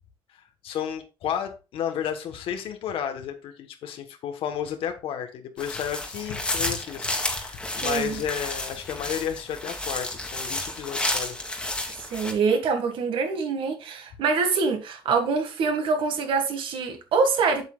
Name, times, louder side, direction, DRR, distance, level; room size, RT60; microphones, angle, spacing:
voice 1, 0.6-11.4, left 9 dB, 90° left, 1.2 m, -32 dB
sound 1, 5.6-12.3, left 2 dB, 10° left, 1.6 m, -31 dB
voice 2, 7.8-8.2 12.1-17.6, right 4 dB, 70° right, 1.9 m, -25 dB
8.2 x 8.0 x 2.4 m
cardioid pair, 160°, 9 cm